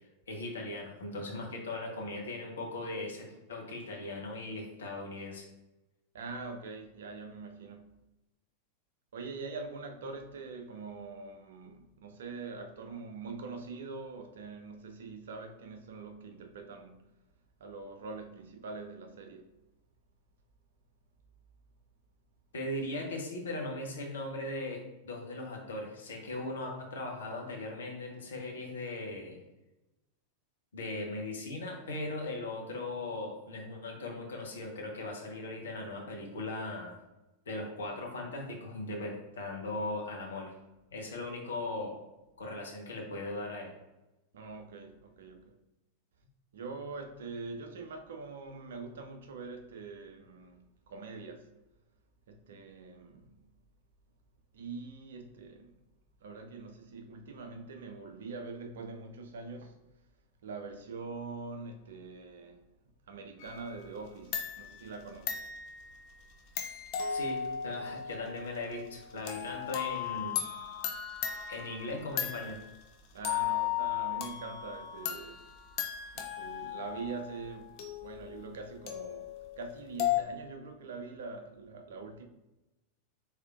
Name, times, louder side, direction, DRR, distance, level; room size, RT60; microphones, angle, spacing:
voice 1, 0.3-5.4 22.5-29.4 30.7-37.0 37.5-40.5 40.9-42.0 42.4-43.7 67.1-70.4 71.5-72.6, left 2 dB, 65° left, 0.9 m, -38 dB
voice 2, 6.1-7.9 9.1-17.1 17.6-19.5 44.3-45.6 46.5-51.5 52.3-53.3 54.5-55.8 56.2-59.8 60.4-62.6 63.1-65.4 73.1-75.4 76.1-82.2, right 4 dB, 60° right, 0.5 m, -44 dB
sound 1, 63.4-64.0 64.3-72.8 73.2-80.2, left 10 dB, 40° left, 0.5 m, -36 dB
4.2 x 3.4 x 2.5 m
figure-of-eight pair, 90°, 0 cm